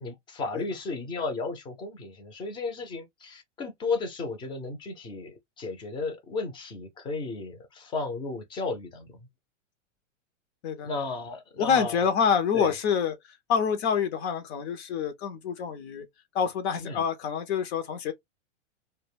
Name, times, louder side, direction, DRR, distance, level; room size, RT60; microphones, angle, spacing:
voice 1, 0.0-9.2 10.8-12.1 12.5-12.7 16.8-17.0, left 3 dB, 15° left, 0.4 m, -34 dB
voice 2, 11.6-16.1 16.3-18.1, left 7 dB, 60° left, 0.6 m, -27 dB
2.2 x 2.2 x 3.1 m
hypercardioid pair, 130°, 37 cm